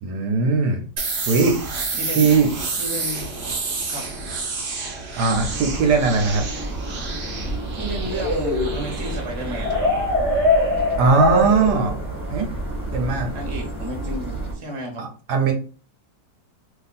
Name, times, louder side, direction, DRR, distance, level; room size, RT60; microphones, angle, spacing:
voice 1, 0.0-0.8 1.3-1.6 2.2-2.5 5.1-6.5 11.0-11.9 12.3-12.5 12.9-13.3 15.0-15.5, right 4 dB, 75° right, 4 dB, 1.2 m, -19 dB
sound 1, 1.0-12.6, right 4 dB, 55° right, 0.7 m, -31 dB
voice 2, 1.9-2.3 2.8-3.3 3.9-4.0 7.7-10.0 13.3-15.1, equal, 25° right, 1 dB, 0.8 m, -32 dB
sound 2, 5.3-14.5, right 2 dB, 5° right, 1.3 m, -30 dB
sound 3, 8.1-12.2, left 2 dB, 40° left, 0.9 m, -22 dB
2.8 x 2.6 x 4.0 m, 0.36 s
omnidirectional pair, 1.9 m